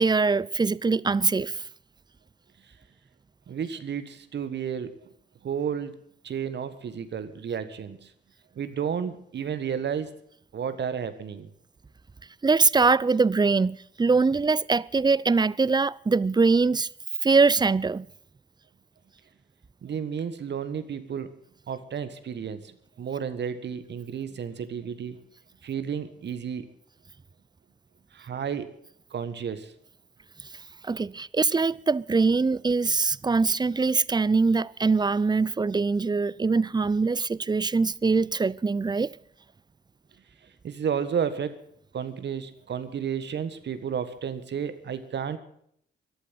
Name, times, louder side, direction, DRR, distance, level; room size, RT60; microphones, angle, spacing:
voice 1, 0.0-1.6 12.4-16.9 17.2-18.1 30.8-39.2, right 4 dB, 20° right, 0.5 m, -23 dB
voice 2, 3.5-4.9 5.4-6.0 6.2-8.1 8.5-10.1 10.5-11.5 19.8-21.3 21.7-22.7 23.0-25.2 25.6-26.7 28.1-28.7 29.1-29.7 40.6-41.6 41.9-45.4, right 7 dB, 55° right, 1.5 m, -32 dB
14.0 x 11.5 x 8.0 m
hypercardioid pair, 50°, 21 cm